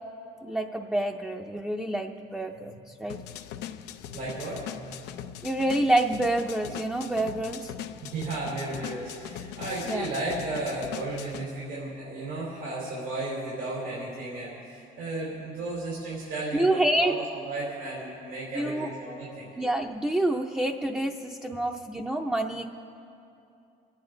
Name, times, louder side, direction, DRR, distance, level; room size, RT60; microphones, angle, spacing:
voice 1, 0.4-3.2 5.4-7.7 9.9-10.0 16.5-17.1 18.6-18.9 19.6-22.7, right 1 dB, 5° right, 0 dB, 0.6 m, -27 dB
sound 1, 3.1-11.4, left 10 dB, 90° left, 0.6 m, -40 dB
voice 2, 4.1-5.0 8.0-19.5, right 2 dB, 90° right, -7 dB, 3.9 m, -34 dB
26.5 x 9.0 x 3.9 m, 2.7 s
cardioid pair, 110°, 17 cm